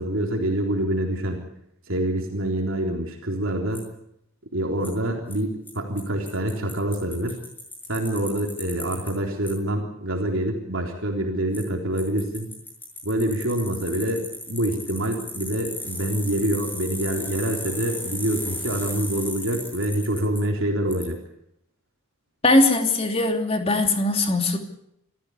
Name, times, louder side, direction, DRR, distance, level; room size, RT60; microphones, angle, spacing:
voice 1, 0.0-1.4 1.9-3.8 4.5-7.4 7.9-12.5 13.0-21.2, right 1 dB, 65° right, 1 dB, 3.7 m, -26 dB
Bicycle, 3.7-3.8 4.8-4.9 5.3-5.4 5.7-5.8 6.0-6.1 6.3-9.1 9.5-9.6 11.5-11.6 12.0-20.4 20.9-21.0, left 1 dB, 10° left, 6.2 m, -35 dB
voice 2, 22.4-24.6, left 2 dB, 25° left, 4 dB, 2.9 m, -20 dB
27.5 x 15.0 x 8.4 m, 0.77 s
head